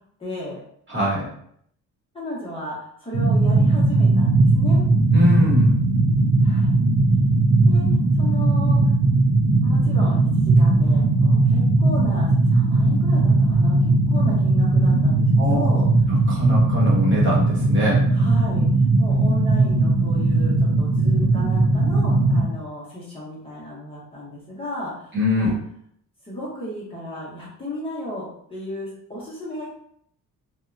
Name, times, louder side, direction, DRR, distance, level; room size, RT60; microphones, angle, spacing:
voice 1, 0.2-0.6 2.1-4.8 6.4-6.8 7.7-7.9 8.1-8.8 9.6-15.8 18.1-25.5 26.2-29.7, left 1 dB, 15° left, -7 dB, 0.7 m, -34 dB
voice 2, 0.9-1.3 5.1-5.7 15.4-15.7 16.1-18.1 25.1-25.5, left 1 dB, 35° right, -5 dB, 0.9 m, -23 dB
sound 1, 3.1-22.4, right 2 dB, 60° right, 0.6 m, -18 dB
2.8 x 2.1 x 2.4 m, 0.67 s
cardioid pair, 155°, 34 cm